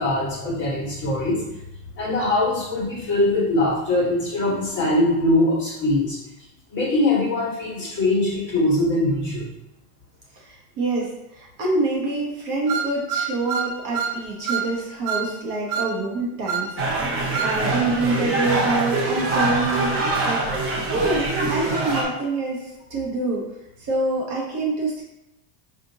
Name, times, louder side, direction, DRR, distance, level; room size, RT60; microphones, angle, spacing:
voice 1, 0.0-1.4 1.9-6.2 6.7-9.5, left 1 dB, 25° left, -6 dB, 1.4 m, -22 dB
voice 2, 10.3-23.4 23.8-25.0, right 2 dB, 45° right, -3 dB, 1.0 m, -26 dB
sound 1, 12.7-14.2 14.5-14.7 15.1-15.3 15.7-15.9 16.5-16.7 17.3-17.6, right 7 dB, 80° right, 0.7 m, -26 dB
sound 2, 16.8-22.0, right 2 dB, 25° right, 0.6 m, -24 dB
5.0 x 2.9 x 2.7 m, 0.92 s
cardioid pair, 160°, 49 cm